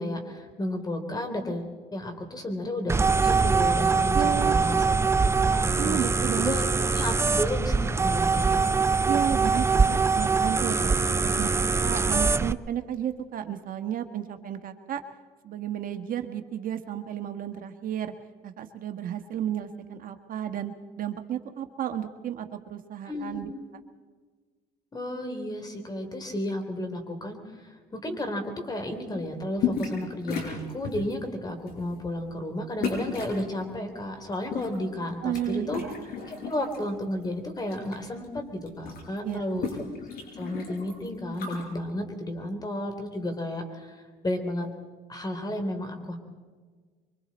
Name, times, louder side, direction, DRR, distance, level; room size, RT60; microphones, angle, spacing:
voice 1, 0.0-5.0 5.2-6.0 6.4-6.6 6.9-8.7 23.1-23.4 24.9-35.8 36.3-39.7 40.4-44.7 45.1-46.2, left 1 dB, 25° left, 5 dB, 3.6 m, -33 dB
sound 1, 2.9-12.5, right 4 dB, 15° right, 0.5 m, -23 dB
voice 2, 4.1-4.6 5.8-6.5 9.1-15.0 15.4-18.1 18.4-23.5 35.2-35.9 39.2-39.7, right 10 dB, 55° right, 7 dB, 1.3 m, -33 dB
sound 2, 29.6-30.0 30.3-31.1 31.7-31.9 32.8-33.4 34.3-35.4 35.7-36.8 37.2-38.0 38.2-38.3 38.6-41.6, left 6 dB, 60° left, 7.2 m, -33 dB
25.0 x 24.0 x 4.3 m, 1.5 s
cardioid pair, 110°, 17 cm